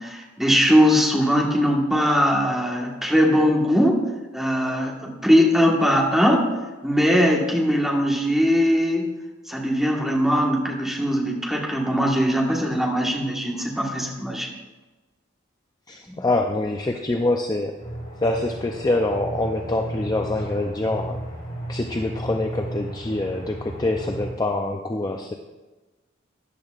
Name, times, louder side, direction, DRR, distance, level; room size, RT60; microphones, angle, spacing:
voice 1, 0.0-4.0 4.3-6.5 6.8-9.1 9.5-14.5 16.1-16.2, equal, ahead, -2 dB, 1.4 m, -20 dB
voice 2, 15.9-17.8 18.2-21.2 21.7-25.3, left 2 dB, 20° left, 3 dB, 0.4 m, -25 dB
Aircraft, 17.8-24.3, right 1 dB, 45° left, 3.7 m, -34 dB
13.5 x 10.5 x 2.5 m, 1.2 s
head